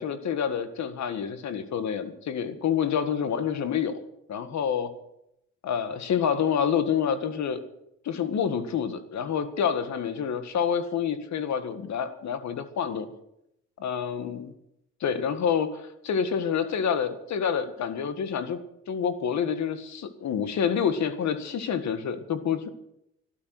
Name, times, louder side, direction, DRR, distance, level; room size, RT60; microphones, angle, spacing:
voice 1, 0.0-4.0 4.3-4.9 5.6-7.6 8.1-13.1 13.8-14.5 15.0-18.6 18.9-22.7, left 7 dB, 65° left, 10 dB, 1.8 m, -28 dB
13.0 x 12.5 x 7.7 m, 0.81 s
cardioid pair, 90°, 30 cm